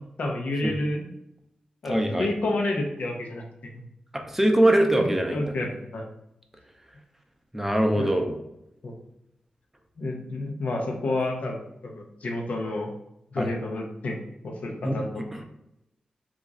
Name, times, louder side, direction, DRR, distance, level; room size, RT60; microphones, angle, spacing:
voice 1, 0.2-1.1 1.8-3.4 3.7-3.8 5.0-5.7 5.9-6.0 8.0-8.1 8.8-8.9 10.0-11.6 11.8-12.9 13.3-14.2 14.4-15.2, left 2 dB, 75° left, 1 dB, 0.7 m, -29 dB
voice 2, 1.8-2.3 4.1-5.4 7.5-8.4 13.4-13.5 14.8-15.0 15.3-15.4, right 1 dB, 10° right, 3 dB, 0.6 m, -22 dB
3.0 x 2.4 x 3.7 m, 0.82 s
cardioid pair, 65°, 2 cm